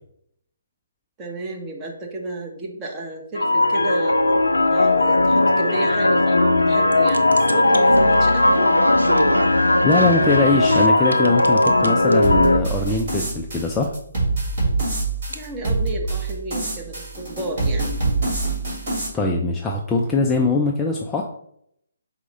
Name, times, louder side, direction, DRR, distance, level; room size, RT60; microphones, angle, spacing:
voice 1, 1.2-4.2 4.7-8.6 15.3-17.9, right 2 dB, 20° right, 1 dB, 0.8 m, -32 dB
sound 1, 3.4-12.6, left 2 dB, 80° left, 0.4 m, -17 dB
sound 2, 6.9-10.9 11.1-12.1 15.3-15.4, right 2 dB, 75° right, 0.4 m, -25 dB
voice 2, 9.8-13.9 19.1-21.2, left 3 dB, 10° left, 0 dB, 0.3 m, -21 dB
sound 3, 12.2-19.1, right 3 dB, 45° right, 1.6 m, -25 dB
4.6 x 2.1 x 3.9 m, 0.70 s
figure-of-eight pair, 140°, 0 cm